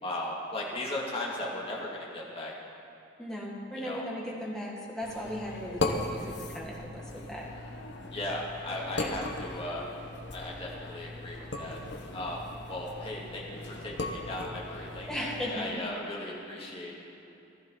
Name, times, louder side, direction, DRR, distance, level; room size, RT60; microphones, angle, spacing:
voice 1, 0.0-2.5 3.8-4.0 8.1-9.8 10.3-11.8 12.1-17.0, left 1 dB, 30° left, -4 dB, 2.2 m, -37 dB
voice 2, 3.2-7.0 7.3-7.5 9.0-9.1 15.1-15.7, equal, 5° left, -4 dB, 2.0 m, -37 dB
sound 1, 5.0-15.5, left 2 dB, 60° left, 1.1 m, -38 dB
15.5 x 13.5 x 4.0 m, 2.9 s
head